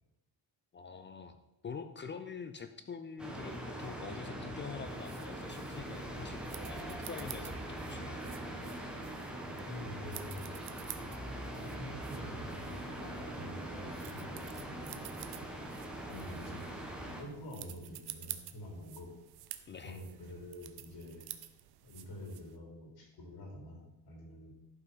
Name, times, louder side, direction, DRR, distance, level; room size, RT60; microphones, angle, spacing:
voice 1, 0.7-8.3 19.7-20.0, left 5 dB, 30° left, 9 dB, 0.5 m, -46 dB
sound 1, 3.2-17.2, right 1 dB, ahead, 1.5 m, -42 dB
sound 2, 4.9-22.6, right 13 dB, 70° right, 0.8 m, -51 dB
voice 2, 9.5-10.5 11.6-15.0 16.1-16.7 17.0-19.1 19.8-21.3 21.8-24.5, left 1 dB, 70° left, 0 dB, 3.7 m, -47 dB
11.5 x 5.7 x 5.6 m, 0.91 s
cardioid pair, 135°, 40 cm